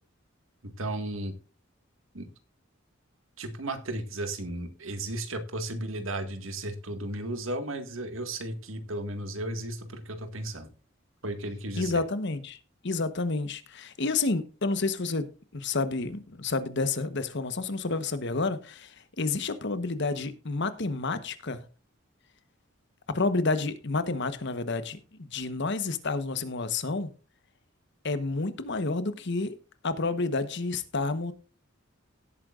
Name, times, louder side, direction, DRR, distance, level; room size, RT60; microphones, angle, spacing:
voice 1, 0.6-1.3 2.1-2.3 3.4-10.7 11.2-12.0, right 1 dB, 80° right, 1.9 m, -34 dB
voice 2, 11.8-12.6 12.8-15.3 15.5-21.6 23.1-27.1 28.0-29.5 29.8-31.3, left 3 dB, 60° left, 1.2 m, -30 dB
17.5 x 8.7 x 2.5 m
head